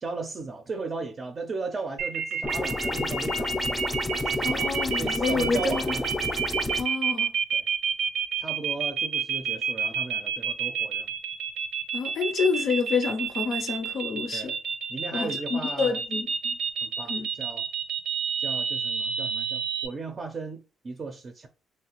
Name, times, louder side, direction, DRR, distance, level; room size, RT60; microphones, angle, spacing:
voice 1, 0.0-3.8 4.1-6.0 7.5-7.7 8.4-11.1 14.3-14.5 14.9-16.0 16.8-17.6 18.4-21.5, right 4 dB, 40° right, 0.5 m, -36 dB
Beep Increase Noise, 2.0-19.9, right 6 dB, 85° right, 0.6 m, -29 dB
sound 1, 2.4-6.8, left 2 dB, 10° left, 0.5 m, -30 dB
voice 2, 4.4-5.8 6.7-7.3 11.9-14.5 15.1-16.6 17.1-17.3, left 5 dB, 65° left, 0.4 m, -28 dB
3.1 x 2.4 x 2.9 m
cardioid pair, 90°, 0 cm